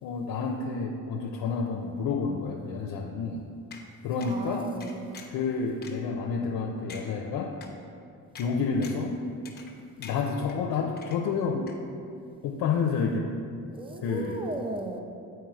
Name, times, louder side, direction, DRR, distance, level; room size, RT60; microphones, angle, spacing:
voice 1, 0.0-3.4 4.0-4.7 5.3-7.5 8.4-9.1 10.0-11.7 12.4-13.3 14.0-14.4, left 5 dB, 75° left, 1 dB, 0.6 m, -29 dB
sound 1, 3.7-3.8 4.2-4.4 4.8-5.4 5.8-5.9 6.4-6.5 6.9-7.0 7.6-7.7 8.4-8.5 8.8-9.1 9.5-9.8 10.0-10.6 11.0-11.4 11.7-11.8, left 5 dB, 30° left, 0.9 m, -45 dB
voice 2, 4.2-5.2 13.7-15.0, right 2 dB, 15° right, 3 dB, 0.6 m, -36 dB
7.8 x 4.6 x 4.7 m, 2.4 s
cardioid pair, 130°, 34 cm